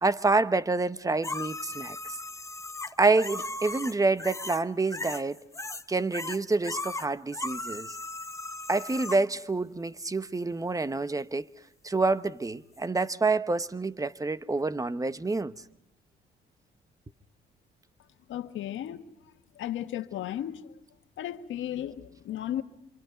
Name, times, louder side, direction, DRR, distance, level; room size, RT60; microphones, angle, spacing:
voice 1, 0.0-2.0 3.0-5.4 5.9-8.0 8.7-11.5 11.8-15.5, right 3 dB, 15° right, 1.1 m, -27 dB
sound 1, 1.2-4.6 4.9-5.8 6.1-9.2 12.8-12.9, left 2 dB, 15° left, 1.0 m, -37 dB
voice 2, 18.3-19.0 19.6-20.6 21.2-22.6, left 11 dB, 80° left, 1.5 m, -34 dB
27.5 x 27.0 x 5.1 m
cardioid pair, 90°, 20 cm